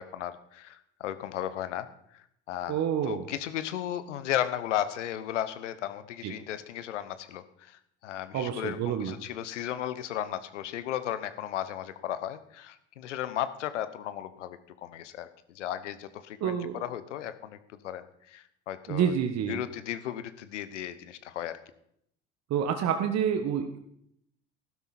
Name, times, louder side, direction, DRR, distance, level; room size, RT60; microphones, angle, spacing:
voice 1, 0.0-1.9 2.1-17.6 17.8-19.1 19.5-21.6, left 11 dB, 75° left, 13 dB, 1.0 m, -35 dB
voice 2, 2.7-3.3 6.2-6.3 8.3-9.1 16.4-16.8 18.9-19.6 22.5-23.8, right 8 dB, 45° right, 6 dB, 1.4 m, -28 dB
15.5 x 12.0 x 4.3 m, 0.72 s
figure-of-eight pair, 65°, 36 cm